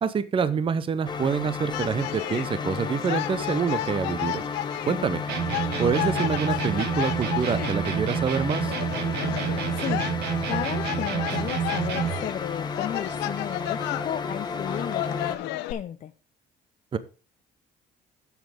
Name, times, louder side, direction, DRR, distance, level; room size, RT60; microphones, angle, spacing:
voice 1, 0.0-4.4 4.9-5.2 5.8-8.8 16.9-17.0, right 6 dB, 30° right, 0.8 m, -26 dB
sound 1, 1.0-15.4, left 5 dB, 25° left, 1.2 m, -33 dB
sound 2, 1.7-15.7, left 16 dB, 90° left, 0.6 m, -34 dB
sound 3, 5.3-12.3, right 8 dB, 80° right, 1.5 m, -29 dB
voice 2, 9.7-16.1, left 10 dB, 45° left, 0.5 m, -34 dB
7.4 x 7.3 x 5.0 m
cardioid pair, 110°, 17 cm